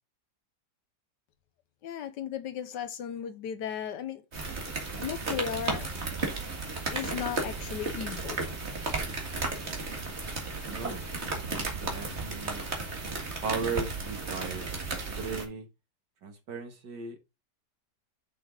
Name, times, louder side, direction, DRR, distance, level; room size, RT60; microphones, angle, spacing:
voice 1, 1.8-4.2 5.0-5.9 6.9-8.5, left 8 dB, 80° left, 1.5 m, -35 dB
sound 1, 4.3-15.4, right 3 dB, 40° right, 2.1 m, -34 dB
voice 2, 10.7-11.0 11.5-12.7 13.4-15.7 16.2-17.2, right 5 dB, 80° right, 2.3 m, -37 dB
6.7 x 5.9 x 3.9 m
omnidirectional pair, 1.8 m